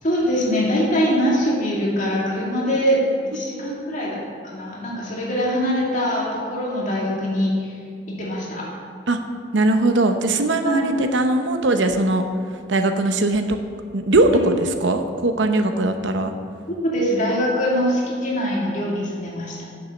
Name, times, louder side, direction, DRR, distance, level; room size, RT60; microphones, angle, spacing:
voice 1, 0.0-3.0 3.3-7.8 8.1-8.7 10.6-10.9 14.3-14.4 16.8-19.6, equal, 45° left, -4 dB, 2.2 m, -23 dB
voice 2, 9.5-12.2 12.7-13.6 13.9-16.3, right 2 dB, 85° right, 7 dB, 0.8 m, -20 dB
8.9 x 7.1 x 6.4 m, 2.2 s
head